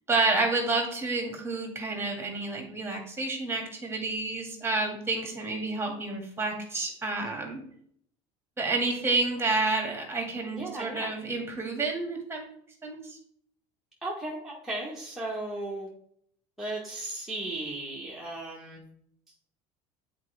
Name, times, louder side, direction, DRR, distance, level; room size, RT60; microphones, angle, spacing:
voice 1, 0.1-7.6 8.6-12.5 12.8-13.2, right 3 dB, 15° right, 2 dB, 2.0 m, -29 dB
voice 2, 10.5-11.1 14.0-15.9 16.6-18.8, right 2 dB, ahead, -5 dB, 1.5 m, -35 dB
8.3 x 4.4 x 3.3 m, 0.66 s
supercardioid pair, 100°, 14 cm